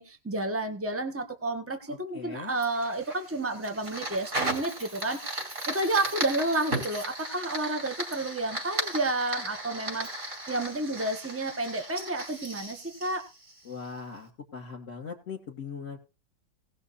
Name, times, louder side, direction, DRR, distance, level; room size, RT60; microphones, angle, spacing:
voice 1, 0.0-13.3, right 2 dB, 10° right, 5 dB, 1.6 m, -31 dB
voice 2, 1.9-2.5 13.6-16.0, left 5 dB, 45° left, -1 dB, 2.2 m, -40 dB
Fire, 2.6-14.0, right 1 dB, 50° right, 5.3 m, -36 dB
18.5 x 6.5 x 4.2 m, 0.29 s
omnidirectional pair, 1.9 m